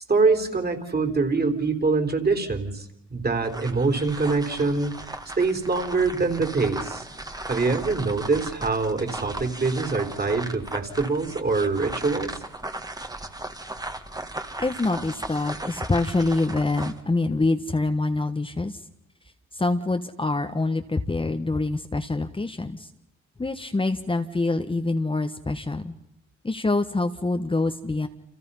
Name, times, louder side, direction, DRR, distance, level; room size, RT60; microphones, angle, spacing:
voice 1, 0.1-7.1 7.5-12.3, right 4 dB, 30° right, 5 dB, 3.8 m, -24 dB
sound 1, 3.3-17.0, right 2 dB, 10° right, 1.9 m, -37 dB
voice 2, 14.6-18.8 19.5-22.9 23.4-25.9 26.4-28.1, left 2 dB, 15° left, 6 dB, 1.4 m, -25 dB
29.5 x 27.0 x 5.6 m, 0.78 s
cardioid pair, 90°, 30 cm